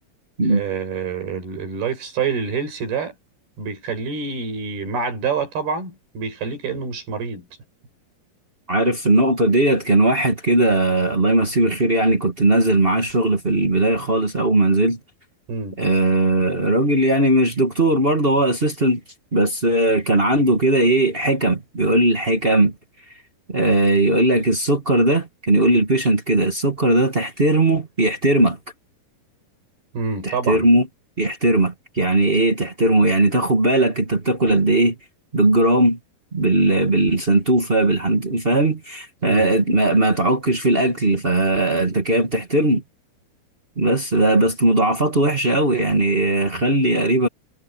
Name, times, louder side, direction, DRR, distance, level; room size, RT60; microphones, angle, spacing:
voice 1, 0.5-3.1 3.6-7.5 15.5-15.8 29.9-30.6 39.2-39.4, right 5 dB, 75° right, 8.1 m, -27 dB
voice 2, 8.7-15.0 15.8-19.0 19.3-22.7 23.5-28.6 30.2-30.9 31.2-34.9 35.3-36.0 36.3-42.8 43.8-47.3, right 1 dB, 35° right, 0.8 m, -18 dB
omnidirectional pair, 4.5 m